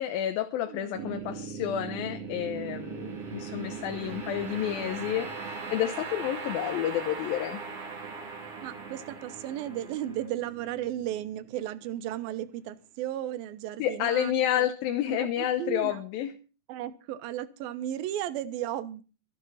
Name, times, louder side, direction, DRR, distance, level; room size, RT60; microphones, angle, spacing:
voice 1, 0.0-7.6 13.8-16.3, left 11 dB, 85° left, 7 dB, 2.7 m, -30 dB
voice 2, 0.7-1.2 8.6-14.3 15.1-16.0 16.7-19.0, right 12 dB, 85° right, 14 dB, 2.7 m, -35 dB
sound 1, 0.9-12.1, right 5 dB, 45° right, 3.2 m, -39 dB
24.0 x 9.1 x 4.1 m, 0.35 s
omnidirectional pair, 4.1 m